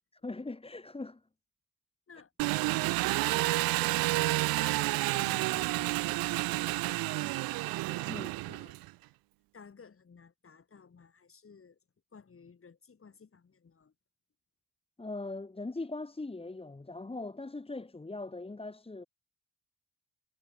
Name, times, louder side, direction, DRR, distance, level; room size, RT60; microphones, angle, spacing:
voice 1, 0.2-1.2 8.0-8.5 15.0-19.1, left 2 dB, 15° left, 1.8 m, -40 dB
voice 2, 2.1-3.0 3.3-4.8 5.0-8.7 9.5-11.8 12.1-13.9, left 5 dB, 40° left, 6.1 m, -55 dB
Engine, 2.4-8.9, right 20 dB, 85° right, 0.7 m, -30 dB
cardioid pair, 75°, 34 cm